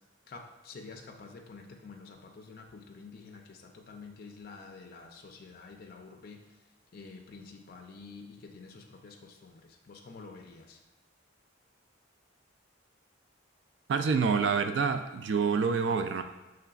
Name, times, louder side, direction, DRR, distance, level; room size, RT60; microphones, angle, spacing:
voice 1, 0.3-6.6 6.9-10.8, left 4 dB, 45° left, 3 dB, 0.4 m, -48 dB
voice 2, 13.9-16.2, right 5 dB, 60° right, 8 dB, 0.3 m, -27 dB
5.7 x 3.2 x 2.3 m, 1.1 s
head